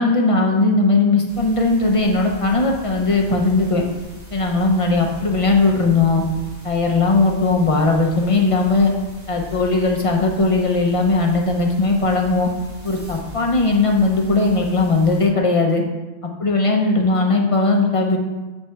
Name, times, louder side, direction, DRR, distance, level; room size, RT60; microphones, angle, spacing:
voice 1, 0.0-3.8 4.3-6.2 6.6-8.9 9.3-12.5 12.8-15.8 16.2-18.2, left 3 dB, 35° left, 1 dB, 0.6 m, -18 dB
sound 1, 1.3-15.3, equal, 80° right, 1.8 m, -40 dB
7.5 x 3.5 x 4.4 m, 1.2 s
omnidirectional pair, 1.2 m